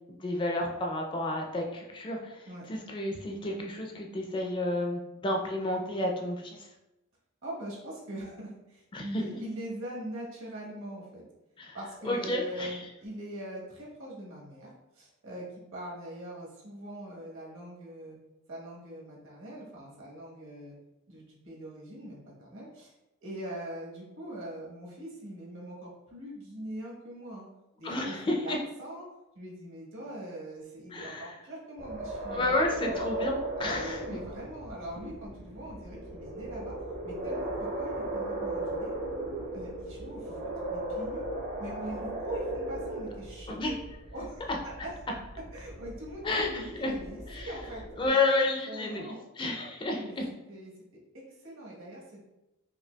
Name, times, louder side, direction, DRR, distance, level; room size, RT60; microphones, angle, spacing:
voice 1, 0.1-6.7 8.9-9.2 11.6-11.8 12.0-12.8 27.8-28.6 30.9-31.4 32.3-34.0 43.5-43.8 44.5-44.6 46.2-46.9 47.3-47.5 48.0-50.3, left 2 dB, 25° left, 1 dB, 0.4 m, -31 dB
voice 2, 7.4-11.2 11.7-14.7 14.9-18.2 18.5-20.7 21.1-22.9 23.2-27.5 27.8-28.5 28.8-29.0 29.3-32.5 33.6-36.8 37.0-38.9 39.5-40.4 40.7-41.2 41.6-43.8 44.1-45.2 45.5-48.2 48.7-49.2 49.9-50.2 50.5-50.7 51.4-52.3, right 1 dB, 65° right, -4 dB, 1.1 m, -42 dB
sound 1, 31.8-48.1, right 2 dB, 35° right, 0.6 m, -37 dB
5.0 x 2.3 x 2.2 m, 0.95 s
head